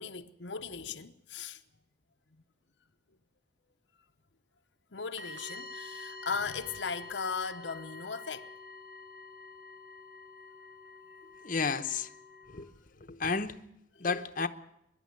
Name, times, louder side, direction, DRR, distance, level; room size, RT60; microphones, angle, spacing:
voice 1, 0.0-1.6 4.9-8.5, left 5 dB, 75° left, 0.9 m, -37 dB
sound 1, 5.2-12.6, left 3 dB, 80° right, 5.2 m, -47 dB
voice 2, 11.4-12.1 12.5-12.7 13.0-13.6 14.0-14.5, left 4 dB, 45° left, 0.9 m, -32 dB
24.0 x 11.5 x 9.7 m
head